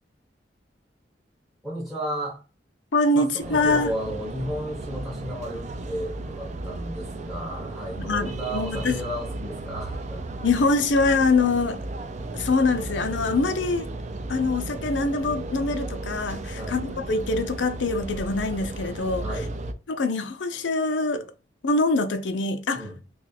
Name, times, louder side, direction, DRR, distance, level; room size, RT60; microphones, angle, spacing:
voice 1, 1.6-2.4 3.1-10.3 16.5-16.8 19.2-19.5 22.7-23.0, equal, ahead, 0.7 m, -33 dB
voice 2, 2.9-3.9 8.0-9.0 10.4-11.8 12.3-13.9 14.3-19.4 19.9-21.3 21.6-22.9, left 3 dB, 85° left, 0.5 m, -24 dB
sound 1, 3.4-19.7, right 2 dB, 40° right, 0.4 m, -35 dB
2.9 x 2.4 x 4.1 m
head